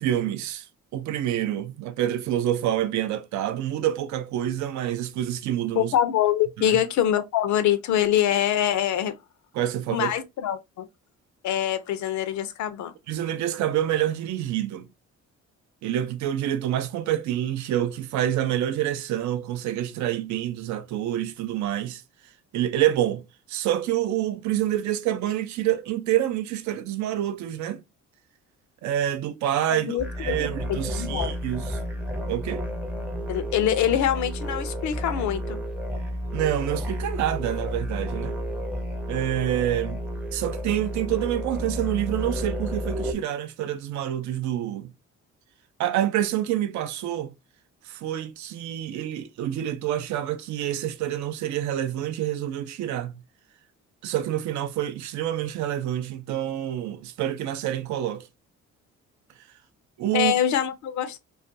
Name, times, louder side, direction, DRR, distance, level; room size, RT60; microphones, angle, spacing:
voice 1, 0.0-0.7 0.9-5.9 6.6-6.8 9.5-10.1 13.1-14.9 15.8-22.0 22.5-23.2 23.5-27.8 28.8-31.8 32.3-32.7 36.3-38.4 39.1-40.0 40.3-44.9 45.8-47.3 47.8-53.1 54.0-58.3 60.0-60.3, right 12 dB, 70° right, 0.5 m, -27 dB
voice 2, 5.7-9.2 9.9-10.9 11.4-12.9 29.8-31.3 33.3-35.6 60.1-61.2, left 10 dB, 70° left, 0.5 m, -24 dB
sound 1, 30.0-43.1, equal, 5° right, 0.5 m, -31 dB
2.4 x 2.2 x 2.6 m
cardioid pair, 90°, 30 cm